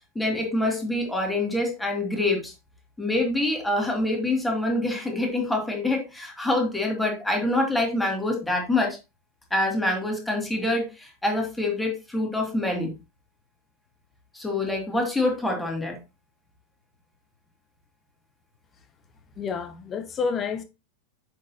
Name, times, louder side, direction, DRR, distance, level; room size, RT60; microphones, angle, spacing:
voice 1, 0.1-2.5 3.0-9.0 9.5-12.9 14.3-16.0, left 2 dB, 5° left, 2.5 m, -26 dB
voice 2, 19.4-20.6, left 5 dB, 25° left, 1.2 m, -29 dB
7.9 x 6.3 x 2.9 m
figure-of-eight pair, 90°, 0 cm